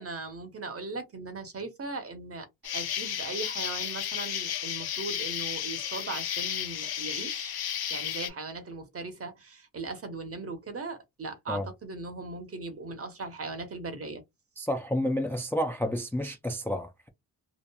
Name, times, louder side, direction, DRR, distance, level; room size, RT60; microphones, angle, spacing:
voice 1, 0.0-2.5 2.7-7.5 7.9-14.2, right 3 dB, 35° right, 0.9 m, -38 dB
Insect, 2.6-8.3, left 10 dB, 70° left, 0.6 m, -33 dB
voice 2, 14.6-17.1, equal, 5° left, 0.4 m, -30 dB
2.9 x 2.4 x 2.2 m
cardioid pair, 100°, 38 cm